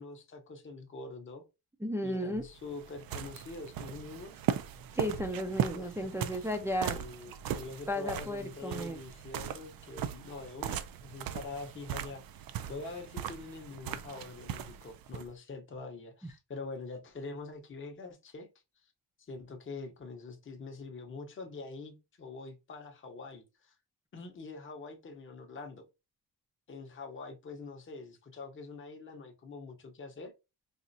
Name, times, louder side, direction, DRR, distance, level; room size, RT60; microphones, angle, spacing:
voice 1, 0.0-1.4 2.0-4.4 5.7-6.5 6.8-12.2 12.7-18.5 19.2-23.7 24.1-25.9 26.7-30.3, left 3 dB, 30° left, 0.7 m, -44 dB
voice 2, 1.8-2.4 4.9-7.0 7.9-9.0, equal, 5° right, 0.4 m, -34 dB
sound 1, 2.3-15.3, right 9 dB, 60° right, 0.5 m, -38 dB
4.2 x 2.4 x 2.6 m
cardioid pair, 115°, 40 cm